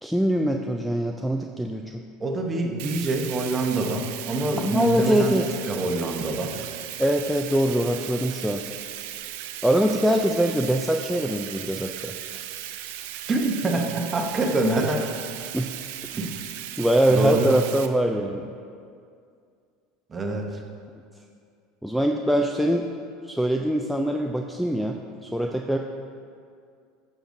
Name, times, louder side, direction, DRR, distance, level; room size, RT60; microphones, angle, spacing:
voice 1, 0.0-2.0 4.6-5.5 7.0-8.6 9.6-12.4 15.5-15.7 16.8-18.5 21.8-22.9 23.2-25.8, right 1 dB, ahead, 1 dB, 0.3 m, -23 dB
voice 2, 2.2-5.4 5.7-6.5 13.3-15.1 16.1-16.4 17.1-17.5 20.1-20.6, right 2 dB, 25° right, 2 dB, 0.9 m, -25 dB
Bathtub (filling or washing), 2.8-17.9, right 12 dB, 75° right, 0.4 m, -37 dB
9.9 x 6.5 x 2.6 m, 2.3 s
supercardioid pair, 115°, 0 cm